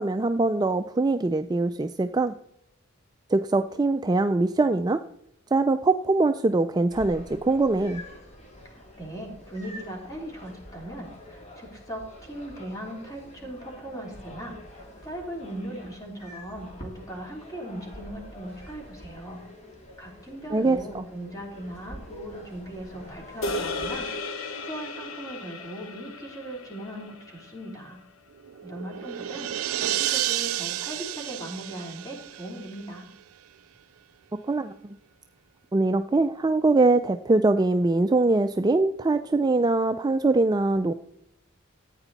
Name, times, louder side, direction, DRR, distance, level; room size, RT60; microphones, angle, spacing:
voice 1, 0.0-2.3 3.3-5.0 5.5-8.0 20.5-21.0 34.5-34.7 35.7-40.9, right 2 dB, 20° right, 9 dB, 0.3 m, -23 dB
sound 1, 6.9-24.0, left 1 dB, 30° left, 2.3 m, -46 dB
voice 2, 8.7-19.4 20.0-28.0 28.6-33.0, right 1 dB, 15° left, -1 dB, 3.3 m, -39 dB
sound 2, 23.4-27.9, left 2 dB, 70° left, 1.1 m, -35 dB
sound 3, 28.4-33.0, right 13 dB, 90° right, 0.4 m, -31 dB
14.0 x 8.9 x 4.1 m, 0.76 s
head